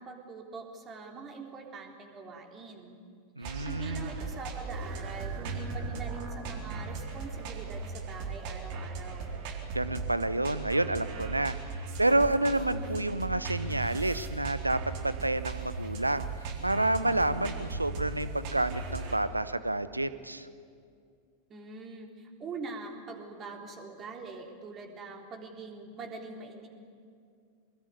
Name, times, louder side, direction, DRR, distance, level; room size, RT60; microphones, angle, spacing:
voice 1, 0.0-3.0 3.4-9.3 21.5-26.7, right 4 dB, 25° right, 3 dB, 3.6 m, -43 dB
sound 1, 3.4-19.2, right 4 dB, 45° right, 3.5 m, -37 dB
voice 2, 3.4-4.1 9.7-16.3 16.6-20.5, right 2 dB, 85° right, 14 dB, 0.9 m, -29 dB
23.5 x 20.5 x 9.8 m, 2.3 s
figure-of-eight pair, 90°, 0 cm